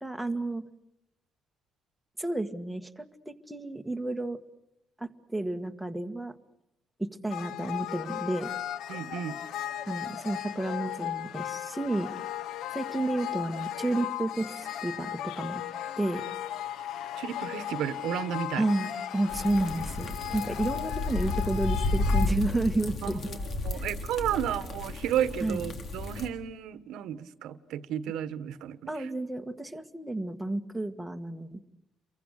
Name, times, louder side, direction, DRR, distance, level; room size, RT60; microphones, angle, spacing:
voice 1, 0.0-0.7 2.2-4.4 5.0-6.3 7.0-8.5 9.9-12.1 12.7-15.6 16.0-16.3 18.6-23.3 23.7-23.9 24.2-24.5 25.4-25.6 28.9-31.6, right 2 dB, 5° right, 5 dB, 1.7 m, -31 dB
sound 1, 7.3-22.3, left 12 dB, 75° left, 1.1 m, -36 dB
voice 2, 8.9-9.4 17.2-18.6 23.0-29.0, right 10 dB, 85° right, 13 dB, 1.5 m, -33 dB
sound 2, 19.3-26.3, left 2 dB, 45° left, 3.6 m, -32 dB
30.0 x 23.5 x 6.6 m, 0.85 s
cardioid pair, 145°, 0 cm